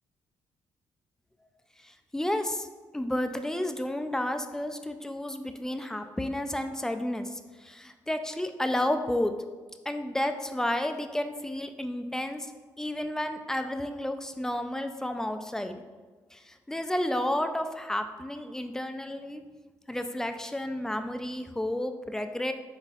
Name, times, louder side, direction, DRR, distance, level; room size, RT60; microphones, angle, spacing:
voice 1, 1.8-2.7 2.9-9.3 9.9-12.5 12.8-15.8 16.3-19.4 19.9-22.5, left 1 dB, 5° left, 7 dB, 0.3 m, -31 dB
4.1 x 3.7 x 2.4 m, 1.3 s
supercardioid pair, 70°, 7 cm